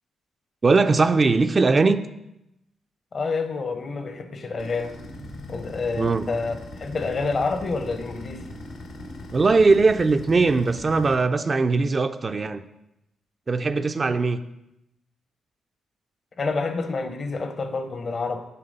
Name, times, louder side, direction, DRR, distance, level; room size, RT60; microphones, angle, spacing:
voice 1, 0.6-2.0 6.0-6.3 9.3-12.6 13.5-14.4, right 3 dB, 40° right, 0.4 m, -20 dB
voice 2, 3.1-4.9 5.5-8.5 16.4-18.5, left 4 dB, 50° left, 0.7 m, -28 dB
sound 1, 4.6-11.2, left 2 dB, 85° left, 1.0 m, -40 dB
6.8 x 3.4 x 5.3 m
cardioid pair, 65°, 0 cm